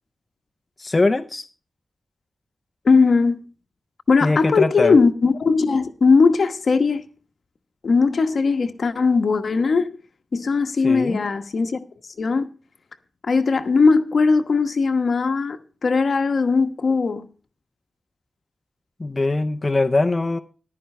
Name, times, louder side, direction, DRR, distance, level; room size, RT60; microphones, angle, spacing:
voice 1, 0.8-1.5 4.2-5.0 10.8-11.2 19.0-20.4, left 2 dB, 25° left, 0.6 m, -21 dB
voice 2, 2.8-3.4 4.1-7.1 7.8-9.9 10.3-11.8 12.2-12.5 13.2-17.3, left 4 dB, 60° left, 1.1 m, -19 dB
14.5 x 11.5 x 3.2 m
wide cardioid pair, 115°, 0 cm